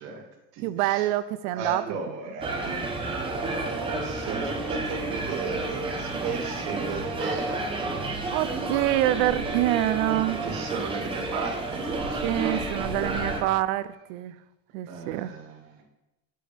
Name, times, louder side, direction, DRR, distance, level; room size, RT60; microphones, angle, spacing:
voice 1, 0.0-1.1 1.5-2.7 2.9-7.7 10.4-12.6 13.1-13.5 14.9-15.8, right 4 dB, 80° right, 1 dB, 2.3 m, -35 dB
voice 2, 0.6-1.8 2.6-2.9 8.3-10.4 12.1-14.4 14.7-15.3, right 15 dB, 60° right, 16 dB, 0.5 m, -26 dB
sound 1, 2.4-13.4, right 2 dB, 10° right, 0.9 m, -31 dB
9.7 x 7.6 x 3.4 m, 0.97 s
cardioid pair, 160°, 47 cm